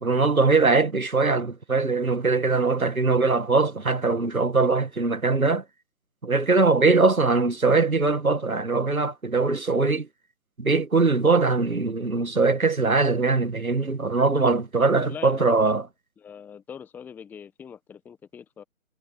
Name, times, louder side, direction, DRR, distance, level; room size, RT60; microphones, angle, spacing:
voice 1, 0.0-5.6 6.2-10.1 10.6-15.8, right 3 dB, 80° right, 2.3 m, -21 dB
voice 2, 15.0-15.6 16.2-18.6, left 7 dB, 5° left, 1.4 m, -42 dB
figure-of-eight pair, 145°, 42 cm